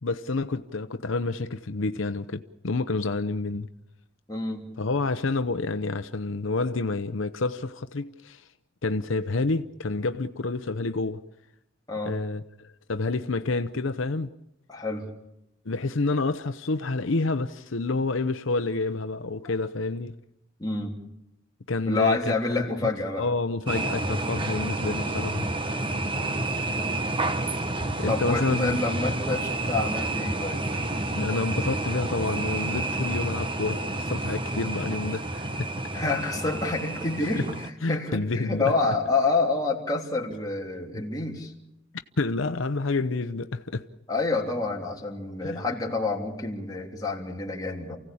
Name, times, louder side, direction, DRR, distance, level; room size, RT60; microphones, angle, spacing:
voice 1, 0.0-3.7 4.8-8.5 8.8-11.2 12.1-12.4 12.9-14.3 15.6-20.1 21.7-22.6 23.2-25.5 28.0-28.8 31.1-35.7 37.2-37.4 37.8-38.7 40.9-41.0 42.2-43.8 45.4-45.6, left 3 dB, 80° left, 0.8 m, -28 dB
voice 2, 4.3-4.7 11.9-12.2 14.7-15.1 20.6-21.0 21.9-23.3 28.1-30.6 35.9-41.5 44.1-48.0, left 3 dB, 20° left, 3.2 m, -28 dB
sound 1, 23.7-37.7, right 2 dB, 25° right, 1.2 m, -29 dB
29.0 x 16.5 x 8.6 m
head